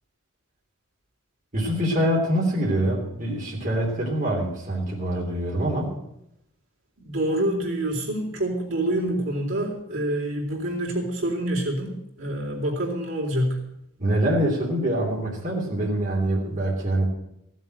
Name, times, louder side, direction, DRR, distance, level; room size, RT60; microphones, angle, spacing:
voice 1, 1.5-5.9 14.0-17.1, right 1 dB, 40° right, -3 dB, 3.1 m, -24 dB
voice 2, 7.0-13.6, right 1 dB, 70° right, -2 dB, 3.7 m, -27 dB
15.5 x 7.5 x 7.7 m, 0.83 s
head